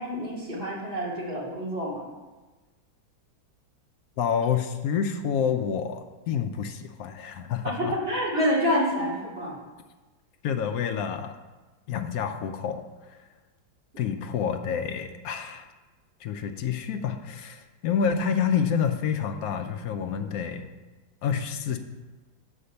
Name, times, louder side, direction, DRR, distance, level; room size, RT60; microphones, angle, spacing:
voice 1, 0.0-2.1 7.6-9.5 13.9-14.1, equal, 30° right, -6 dB, 2.5 m, -28 dB
voice 2, 4.2-7.9 10.4-11.4 11.9-13.2 14.0-15.7 16.2-20.7 21.2-21.8, left 7 dB, 70° left, 7 dB, 0.9 m, -28 dB
6.9 x 5.1 x 6.5 m, 1.2 s
omnidirectional pair, 2.1 m